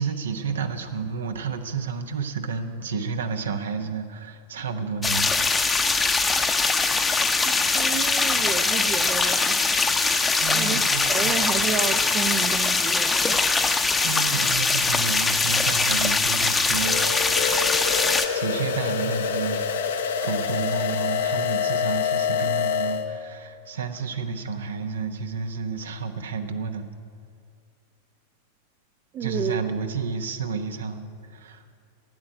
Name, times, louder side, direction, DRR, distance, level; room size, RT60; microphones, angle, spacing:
voice 1, 0.0-5.3 10.4-11.7 12.5-12.6 14.0-17.0 17.3-17.6 18.3-19.7 20.2-26.9 29.2-31.7, right 5 dB, 65° right, 7 dB, 1.0 m, -31 dB
sound 1, 5.0-18.3, left 4 dB, 15° left, 0.8 m, -22 dB
voice 2, 7.4-10.8 11.1-13.4 29.1-29.6, right 7 dB, 30° right, 9 dB, 0.6 m, -31 dB
sound 2, 16.8-23.0, left 7 dB, 60° left, 0.9 m, -26 dB
12.0 x 9.6 x 8.5 m, 2.2 s
figure-of-eight pair, 90°, 0 cm